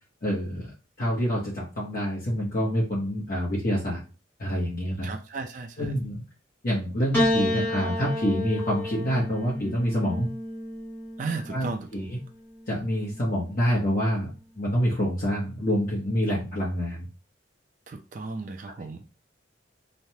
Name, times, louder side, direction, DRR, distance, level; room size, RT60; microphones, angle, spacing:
voice 1, 0.2-4.0 4.4-5.1 5.8-6.2 6.6-10.3 11.5-12.2 12.7-14.3 14.6-17.1 18.8-18.9, equal, 45° left, 0.9 m, -27 dB
voice 2, 5.0-5.9 11.2-12.1 17.9-19.0, right 3 dB, 40° right, 0.4 m, -35 dB
Piano, 7.1-11.6 12.6-13.4, left 1 dB, 10° left, 0.7 m, -30 dB
3.1 x 2.2 x 2.8 m
head